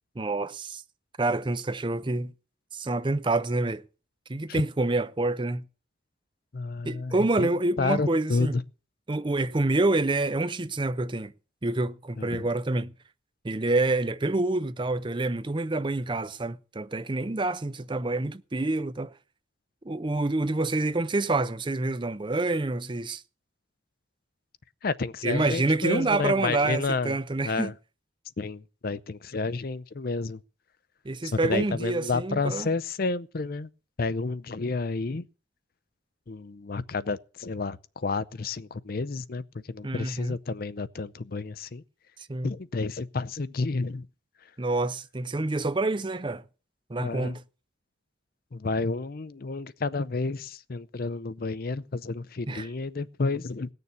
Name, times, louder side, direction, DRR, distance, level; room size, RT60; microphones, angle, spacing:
voice 1, 0.2-0.8 1.2-2.3 2.7-3.8 4.3-5.6 6.8-8.6 9.1-11.3 11.6-12.9 13.4-19.1 19.8-23.2 25.2-27.7 31.0-32.7 39.8-40.4 42.2-42.5 44.6-46.4 46.9-47.4 52.5-52.7, right 2 dB, 25° right, 0.5 m, -27 dB
voice 2, 6.5-7.5 7.8-8.6 12.2-12.5 24.8-27.2 27.4-27.7 28.4-30.4 31.3-33.7 34.0-35.2 36.3-41.8 42.4-44.1 47.0-47.4 48.5-53.7, left 3 dB, 50° left, 0.6 m, -30 dB
18.0 x 6.8 x 6.9 m
head